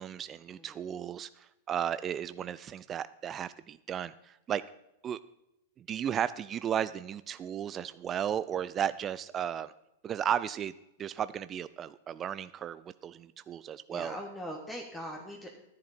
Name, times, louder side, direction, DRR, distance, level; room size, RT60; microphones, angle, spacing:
voice 1, 0.0-4.6 5.0-5.2 5.8-9.7 10.0-10.7 11.0-14.2, right 9 dB, 30° right, 15 dB, 0.4 m, -34 dB
voice 2, 13.9-15.6, equal, 10° left, 1 dB, 1.6 m, -41 dB
11.5 x 10.5 x 4.3 m, 0.86 s
hypercardioid pair, 105°, 0 cm